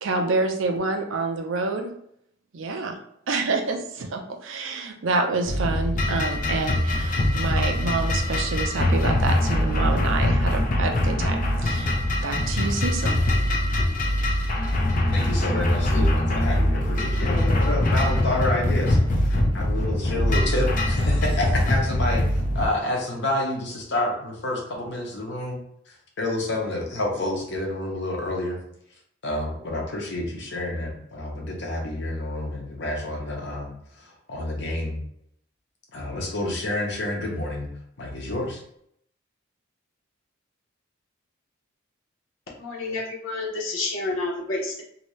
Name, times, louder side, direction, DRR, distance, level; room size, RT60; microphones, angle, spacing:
voice 1, 0.0-1.9 2.5-3.0 3.3-11.9 12.2-13.2, right 3 dB, 75° right, 4 dB, 0.5 m, -27 dB
sound 1, 5.4-22.7, left 1 dB, 40° left, 0.5 m, -23 dB
voice 2, 15.1-22.2 22.5-25.6 26.2-28.6 29.2-33.7 34.3-35.0 35.9-37.7 38.0-38.6, left 1 dB, 60° left, 0 dB, 0.8 m, -28 dB
voice 3, 42.6-44.8, left 2 dB, 85° left, -3 dB, 1.0 m, -29 dB
2.9 x 2.7 x 3.1 m, 0.69 s
head